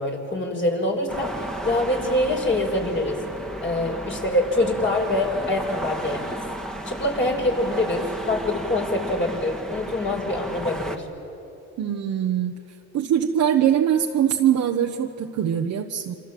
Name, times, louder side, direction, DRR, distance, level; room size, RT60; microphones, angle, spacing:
voice 1, 0.0-3.2 3.6-6.4 6.9-11.0, left 1 dB, 40° left, 1 dB, 5.7 m, -25 dB
sound 1, 1.1-11.0, right 1 dB, ahead, 1.9 m, -34 dB
voice 2, 11.8-12.5 12.9-16.1, right 9 dB, 70° right, 2 dB, 1.2 m, -22 dB
27.5 x 25.5 x 7.7 m, 2.9 s
cardioid pair, 90°, 30 cm